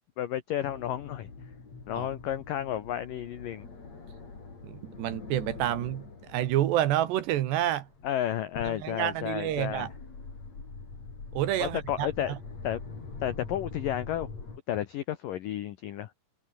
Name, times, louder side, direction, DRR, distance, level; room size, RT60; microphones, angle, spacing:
voice 1, 0.2-1.3 1.9-3.7 8.0-9.9 11.6-12.4 12.6-12.8 13.2-14.3 14.7-16.1, left 11 dB, 85° left, 1.9 m, -32 dB
sound 1, 0.6-14.6, left 4 dB, 35° left, 6.3 m, -44 dB
voice 2, 4.6-7.9 8.6-9.9 11.3-12.4, right 12 dB, 70° right, 3.3 m, -29 dB
omnidirectional pair, 5.6 m